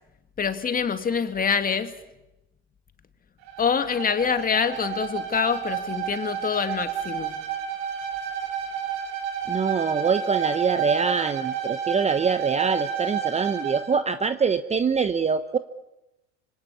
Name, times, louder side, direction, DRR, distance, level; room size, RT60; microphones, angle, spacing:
voice 1, 0.4-1.9 3.6-7.4, left 6 dB, 25° left, 2.3 m, -25 dB
Bowed string instrument, 3.4-13.9, right 8 dB, 65° right, 4.3 m, -30 dB
voice 2, 9.5-15.6, right 5 dB, 20° right, 1.0 m, -24 dB
26.0 x 25.0 x 8.5 m
hypercardioid pair, 100°, 35 cm